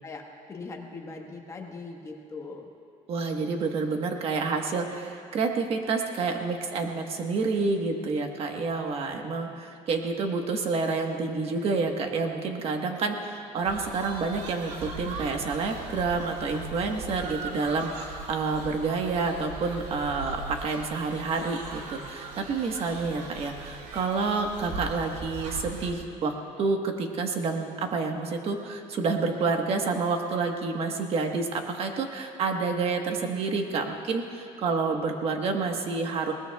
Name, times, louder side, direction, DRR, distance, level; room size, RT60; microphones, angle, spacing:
voice 1, 0.5-2.7, left 3 dB, 20° left, 1 dB, 1.4 m, -40 dB
voice 2, 3.1-26.3 26.6-36.3, right 4 dB, 45° right, 3 dB, 1.3 m, -29 dB
sound 1, 13.6-25.9, right 3 dB, 70° right, 2.1 m, -39 dB
20.5 x 19.5 x 2.4 m, 2.6 s
cardioid pair, 150°, 14 cm